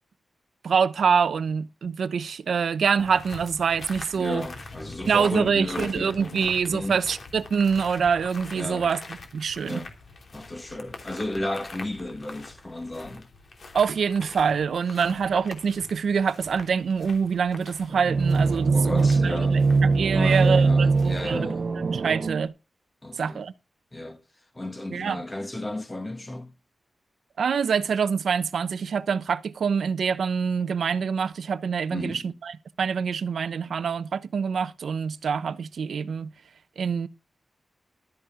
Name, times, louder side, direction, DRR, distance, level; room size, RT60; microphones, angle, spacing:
voice 1, 0.6-4.4 5.1-9.0 9.3-9.8 13.7-19.6 20.0-21.5 21.8-22.5 23.2-23.5 24.9-25.2 27.4-36.3 36.8-37.1, right 6 dB, 80° right, 0.8 m, -25 dB
sound 1, 3.0-21.4, left 3 dB, 45° left, 3.1 m, -44 dB
voice 2, 4.2-7.0 8.5-8.9 9.6-9.9 10.3-13.3 18.7-19.6 20.1-21.7 23.0-23.4 23.9-24.2 24.5-26.6 31.9-32.3, left 1 dB, 20° left, 1.8 m, -33 dB
sound 2, 17.9-22.5, right 4 dB, 50° right, 0.8 m, -22 dB
13.0 x 10.5 x 3.8 m
wide cardioid pair, 175°, 0 cm